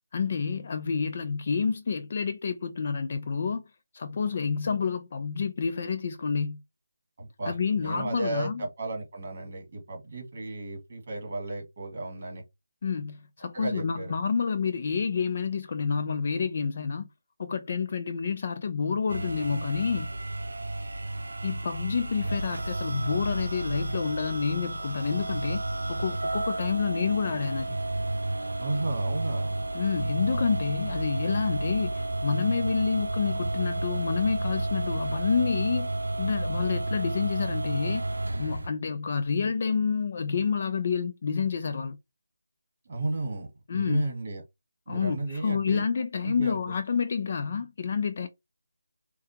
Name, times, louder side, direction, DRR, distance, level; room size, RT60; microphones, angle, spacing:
voice 1, 0.1-3.6 3.9-6.6 7.5-8.6 12.8-17.1 17.4-20.1 21.4-25.6 25.9-27.8 29.7-35.9 36.2-38.1 38.4-42.0 43.7-44.0 44.9-48.3, left 5 dB, 35° left, 0.4 m, -29 dB
voice 2, 7.2-12.4 13.5-14.1 28.6-29.6 42.9-44.4 44.9-45.8 46.2-46.6, right 2 dB, 30° right, 1.8 m, -34 dB
sound 1, 19.1-38.7, right 2 dB, 85° right, 0.5 m, -31 dB
4.7 x 2.3 x 2.8 m
figure-of-eight pair, 175°, 0 cm